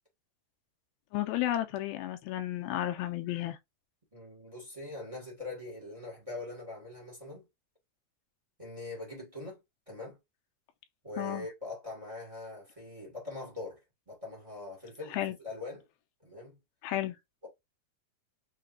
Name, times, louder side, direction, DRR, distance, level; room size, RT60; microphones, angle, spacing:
voice 1, 1.1-3.6 11.2-11.5 15.1-15.3 16.8-17.2, left 13 dB, 80° left, 2.3 m, -32 dB
voice 2, 4.1-7.4 8.6-9.6 9.9-10.2 11.0-13.8 14.1-15.8 16.2-16.6, left 2 dB, 45° right, 0.4 m, -42 dB
6.6 x 2.9 x 2.6 m
omnidirectional pair, 4.7 m